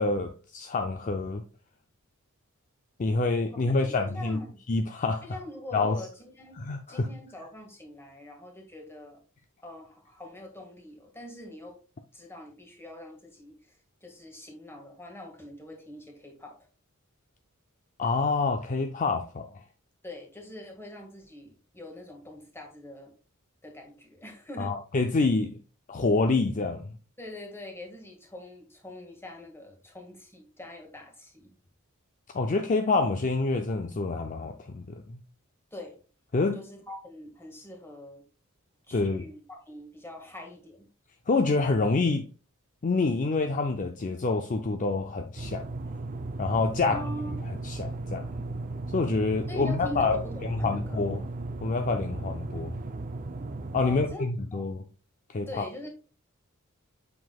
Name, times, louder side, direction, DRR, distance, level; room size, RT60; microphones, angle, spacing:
voice 1, 0.0-1.4 3.0-4.4 4.7-5.3 5.7-6.0 6.7-7.1 18.0-19.5 24.6-25.6 25.9-26.9 32.3-35.2 36.3-36.6 38.9-39.3 41.3-42.3 42.8-45.6 46.4-47.0 47.6-48.3 48.9-51.2 51.6-52.7 53.7-54.8 55.3-55.6, left 3 dB, 35° left, 0.5 m, -27 dB
voice 2, 3.7-4.6 5.2-9.2 9.6-11.8 12.1-16.6 20.0-23.1 23.6-24.8 27.2-31.5 35.7-36.0 36.5-38.2 38.9-40.9 46.8-47.3 49.5-51.1 53.8-54.7 55.5-55.9, left 1 dB, 10° left, 1.8 m, -43 dB
sound 1, 45.4-54.1, right 2 dB, 40° right, 0.5 m, -36 dB
7.6 x 5.9 x 2.3 m
head